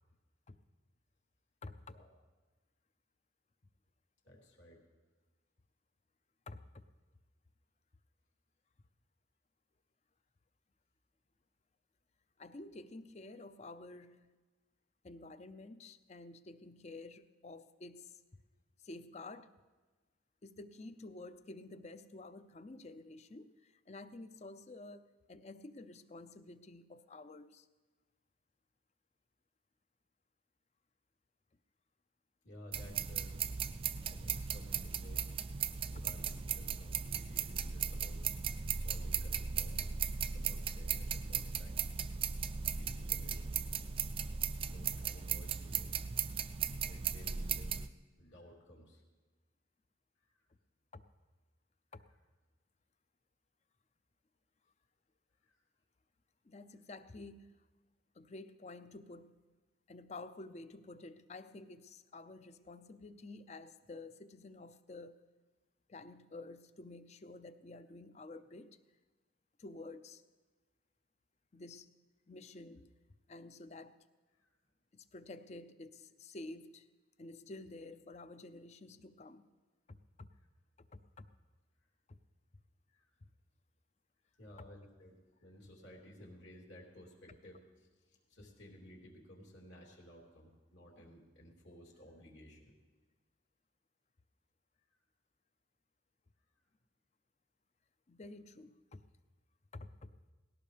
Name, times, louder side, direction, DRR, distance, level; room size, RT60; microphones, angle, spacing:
voice 1, 1.6-2.0 6.5-6.9 12.4-14.3 15.0-18.4 18.8-19.5 20.4-27.7 35.9-36.0 50.9-51.0 51.9-52.0 56.4-57.5 58.1-59.4 59.9-65.2 65.9-68.8 69.6-70.2 71.5-71.9 72.3-72.9 73.3-74.0 74.9-76.9 77.2-79.5 79.9-80.3 80.8-81.3 82.1-82.2 83.2-83.3 90.9-91.1 98.1-99.0 99.7-100.1, left 2 dB, 35° left, 12 dB, 0.5 m, -51 dB
voice 2, 4.2-4.8 32.4-33.4 34.1-35.2 35.9-42.5 42.7-43.8 44.7-45.9 46.8-47.8 48.2-49.0 50.2-50.5 55.4-55.6 74.3-74.5 82.9-83.1 84.3-92.7, equal, 70° left, -2 dB, 3.2 m, -56 dB
sound 1, 32.7-47.9, right 7 dB, 30° right, 0.4 m, -37 dB
18.5 x 17.0 x 3.4 m, 1.3 s
head